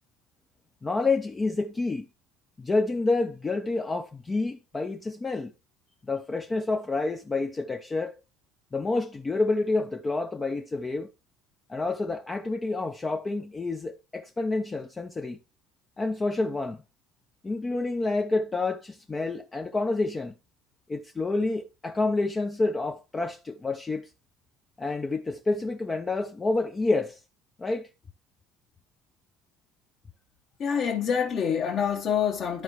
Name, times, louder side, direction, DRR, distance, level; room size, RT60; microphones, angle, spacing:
voice 1, 0.8-2.1 2.6-5.5 6.1-8.2 8.7-11.1 11.7-15.4 16.0-16.8 17.4-20.3 20.9-24.1 24.8-27.2 27.6-27.9, left 3 dB, 15° left, 0.6 m, -28 dB
voice 2, 30.6-32.6, left 7 dB, 35° left, 1.2 m, -26 dB
13.0 x 4.6 x 3.0 m
cardioid pair, 155°, 0 cm